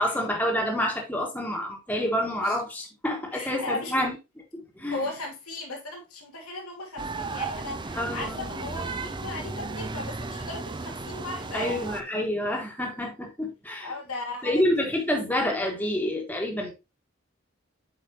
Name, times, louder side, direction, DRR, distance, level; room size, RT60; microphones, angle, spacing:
voice 1, 0.0-4.2 4.5-5.1 7.9-8.4 11.5-13.9 14.4-16.7, left 1 dB, 10° left, 1.4 m, -28 dB
voice 2, 3.3-4.1 4.9-11.9 13.8-14.6, left 2 dB, 90° left, 2.7 m, -36 dB
sound 1, 7.0-12.0, right 3 dB, 20° right, 0.5 m, -34 dB
7.4 x 5.0 x 2.9 m
head